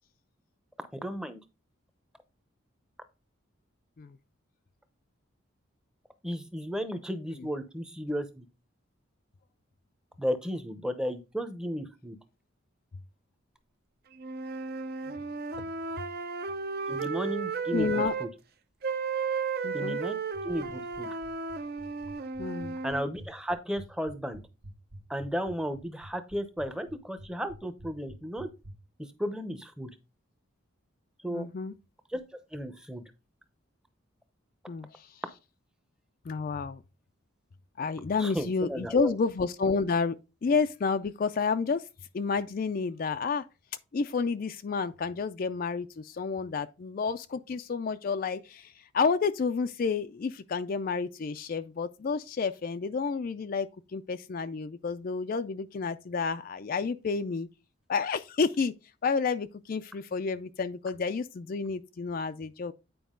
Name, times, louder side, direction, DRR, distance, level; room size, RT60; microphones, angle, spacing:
voice 1, 0.9-1.4 6.2-8.4 10.2-12.2 16.9-18.3 19.7-20.2 20.4-21.1 22.8-24.4 25.1-28.5 29.2-29.9 31.2-31.5 32.1-32.2 32.5-33.0 38.2-39.1, equal, 5° right, 0.7 m, -34 dB
sound 1, 14.2-18.3 18.8-23.0, right 5 dB, 50° right, 0.6 m, -34 dB
voice 2, 17.7-18.1 19.6-20.0 22.4-22.8 31.3-31.7 34.7-34.9 36.3-36.8 37.8-40.2 40.4-41.8 42.1-43.4 43.9-57.5 57.9-58.7 59.0-62.7, left 5 dB, 45° left, 0.3 m, -30 dB
sound 2, 20.3-28.7, right 1 dB, 65° right, 1.2 m, -47 dB
9.2 x 4.7 x 3.7 m
head